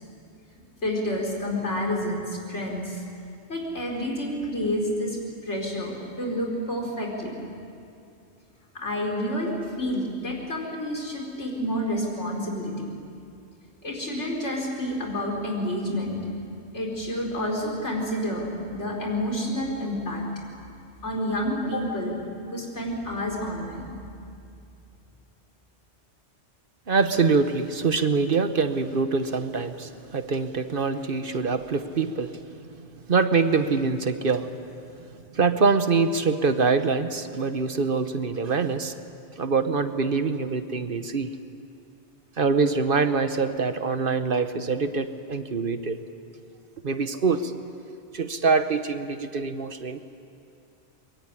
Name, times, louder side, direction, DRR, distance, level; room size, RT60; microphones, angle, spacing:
voice 1, 0.5-3.0 3.5-5.2 5.4-7.3 8.7-12.9 13.8-16.2 16.7-20.2 21.0-22.2 22.5-24.0, equal, 80° left, -1 dB, 4.8 m, -29 dB
voice 2, 26.9-32.3 33.1-34.5 35.3-38.9 39.4-41.3 42.4-46.0 46.8-47.5 48.1-50.0, right 4 dB, 50° right, 10 dB, 1.1 m, -24 dB
23.0 x 22.5 x 9.8 m, 2.5 s
omnidirectional pair, 1.2 m